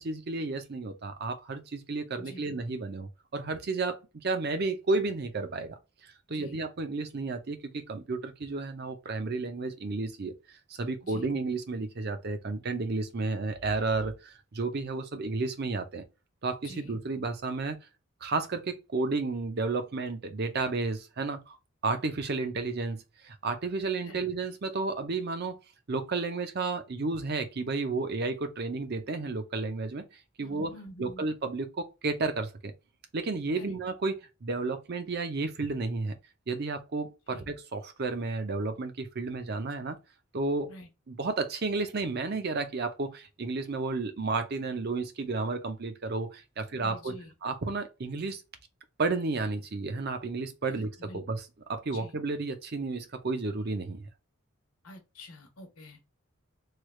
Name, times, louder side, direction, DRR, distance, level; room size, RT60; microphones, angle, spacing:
voice 1, 0.0-5.8 6.0-10.3 10.8-16.0 16.4-17.8 18.2-21.6 21.8-25.6 25.9-30.0 30.4-30.7 31.0-32.7 33.1-36.1 36.5-40.0 40.3-40.7 41.1-48.4 49.0-51.4 51.7-54.1, right 3 dB, 50° right, 0.6 m, -32 dB
voice 2, 6.3-6.6 11.0-11.3 16.6-17.0 24.0-24.3 30.4-31.2 33.5-33.7 37.3-37.4 40.7-40.9 46.6-47.3 50.7-51.2 51.9-52.1 54.8-56.1, left 1 dB, 85° left, 1.0 m, -48 dB
3.2 x 2.3 x 3.0 m
head